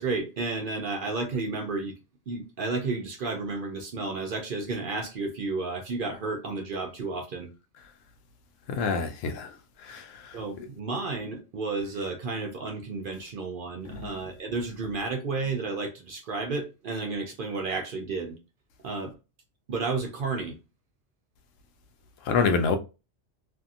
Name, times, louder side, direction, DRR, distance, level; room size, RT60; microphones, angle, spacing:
voice 1, 0.0-2.0 2.3-7.5 10.3-18.4 18.8-19.1 19.7-20.6, right 3 dB, 60° right, 0.6 m, -32 dB
voice 2, 8.7-9.5 9.9-10.1 13.9-14.1 22.3-22.8, left 5 dB, 85° left, 0.9 m, -26 dB
2.6 x 2.6 x 2.5 m
omnidirectional pair, 1.3 m